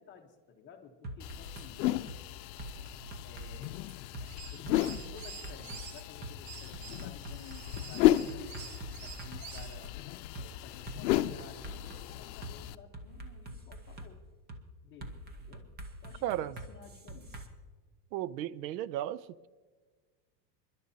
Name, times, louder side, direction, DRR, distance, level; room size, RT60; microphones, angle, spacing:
voice 1, 0.0-1.8 3.2-3.8 4.5-8.7 9.0-9.9 10.3-14.2 14.8-15.7 16.0-17.4, left 6 dB, 25° left, 0.9 m, -53 dB
sound 1, 1.0-1.7 2.1-2.2 2.6-4.3 4.7-5.8 6.2-6.3 6.7-10.0 10.4-10.5 10.9-12.5 12.9-14.1 14.5-14.6 15.0-17.5, right 1 dB, 20° right, 0.8 m, -45 dB
sound 2, 1.2-12.7, left 15 dB, 80° left, 0.6 m, -34 dB
sound 3, 4.2-6.0 6.5-9.8, right 7 dB, 70° right, 1.5 m, -48 dB
voice 2, 16.2-16.6 18.1-19.5, right 12 dB, 85° right, 0.6 m, -35 dB
27.5 x 11.5 x 2.8 m
supercardioid pair, 165°, 50 cm